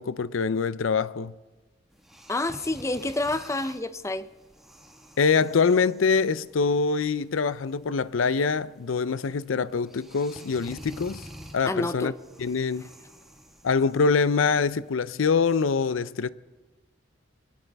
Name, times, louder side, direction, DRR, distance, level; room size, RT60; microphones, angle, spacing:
voice 1, 0.0-1.3 5.2-11.2 11.5-12.1 12.4-12.9 13.6-16.3, left 5 dB, 90° left, 0.5 m, -24 dB
sound 1, 1.9-15.4, equal, ahead, 1.5 m, -49 dB
voice 2, 2.3-4.3 11.7-12.1, left 2 dB, 15° left, 0.5 m, -28 dB
22.5 x 17.5 x 3.5 m
head